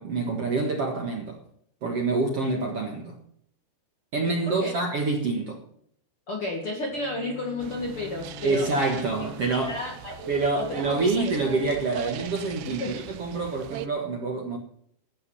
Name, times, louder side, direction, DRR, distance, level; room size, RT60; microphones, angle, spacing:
voice 1, 0.0-1.4 1.8-3.2 4.1-5.6 8.4-9.8 10.3-14.6, right 3 dB, 50° right, 1.9 m, -27 dB
voice 2, 6.3-8.7 9.7-10.3 10.5-10.8 11.2-11.3 12.7-12.9, left 2 dB, 45° left, 1.9 m, -32 dB
Bowed string instrument, 6.9-11.0, left 4 dB, 75° left, 5.9 m, -45 dB
sound 1, 7.6-13.9, right 14 dB, 80° right, 2.4 m, -40 dB
13.5 x 9.3 x 5.6 m
omnidirectional pair, 4.8 m